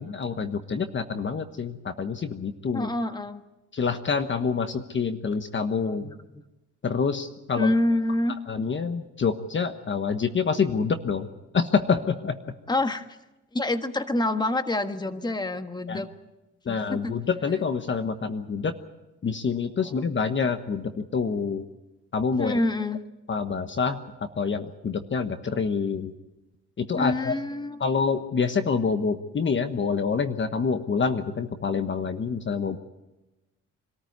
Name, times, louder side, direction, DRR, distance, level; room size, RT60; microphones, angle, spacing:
voice 1, 0.0-2.9 3.7-6.1 6.8-7.7 8.5-11.3 11.5-12.3 15.9-16.1 16.6-18.7 19.2-21.6 22.1-22.6 23.3-24.0 24.3-26.1 26.8-27.3 27.8-32.8, left 5 dB, 40° left, 8 dB, 1.3 m, -27 dB
voice 2, 2.7-3.4 5.8-6.4 7.5-8.4 12.7-13.0 13.5-16.1 16.7-17.1 22.4-23.0 26.9-27.8, left 2 dB, 15° left, 8 dB, 1.5 m, -27 dB
25.0 x 14.0 x 9.5 m, 1.0 s
cardioid pair, 90°, 30 cm